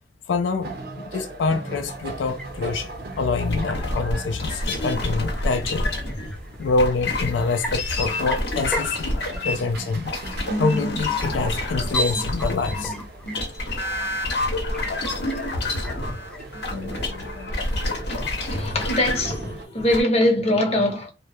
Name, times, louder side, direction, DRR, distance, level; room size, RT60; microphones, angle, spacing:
voice 1, 0.3-0.8 1.1-6.1 6.6-10.1 10.6-13.0 15.7-17.4, left 4 dB, 85° left, 0.3 m, -26 dB
sound 1, 0.6-19.7, right 3 dB, 60° right, 0.6 m, -41 dB
sound 2, 1.7-17.5, equal, 5° left, 0.4 m, -40 dB
sound 3, 3.5-6.3 6.8-20.0, left 1 dB, 65° left, 0.8 m, -28 dB
voice 2, 18.1-21.1, left 1 dB, 35° left, 0.7 m, -22 dB
2.2 x 2.0 x 2.8 m
head